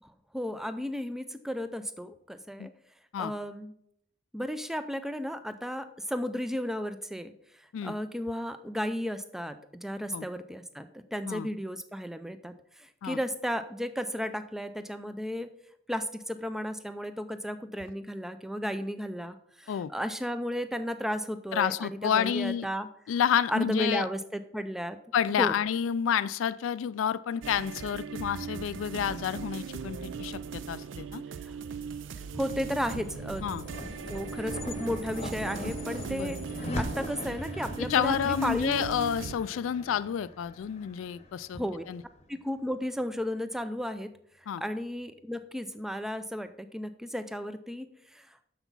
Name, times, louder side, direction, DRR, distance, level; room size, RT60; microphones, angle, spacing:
voice 1, 0.0-2.7 3.2-3.7 4.3-15.5 15.9-22.9 23.5-25.0 25.4-25.6 31.4-31.5 32.3-33.5 33.8-38.8 41.5-41.8 42.3-44.1 44.6-48.4, equal, ahead, 11 dB, 0.4 m, -34 dB
voice 2, 21.5-22.7 23.1-24.1 25.1-31.2 33.4-33.6 35.6-35.7 36.1-36.3 37.9-42.0 44.5-44.6, left 8 dB, 80° left, 16 dB, 0.3 m, -29 dB
sound 1, 27.4-39.4, right 6 dB, 70° right, 0.4 m, -39 dB
sound 2, 31.7-42.2, left 1 dB, 35° left, 0.9 m, -40 dB
7.0 x 6.0 x 5.4 m, 0.71 s
head